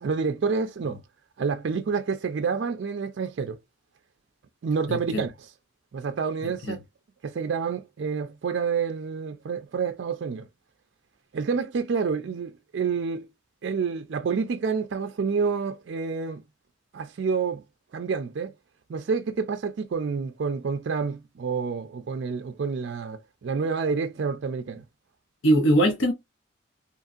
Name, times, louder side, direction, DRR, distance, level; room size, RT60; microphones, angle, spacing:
voice 1, 0.0-1.0 1.4-3.6 4.6-5.5 5.9-6.8 7.2-10.5 11.3-13.3 13.6-16.4 16.9-17.6 17.9-18.5 18.9-24.8, right 5 dB, 60° right, 0.4 m, -28 dB
voice 2, 4.9-5.2 6.4-6.8 25.4-26.1, right 1 dB, 70° left, 0.6 m, -22 dB
2.9 x 2.6 x 2.4 m
head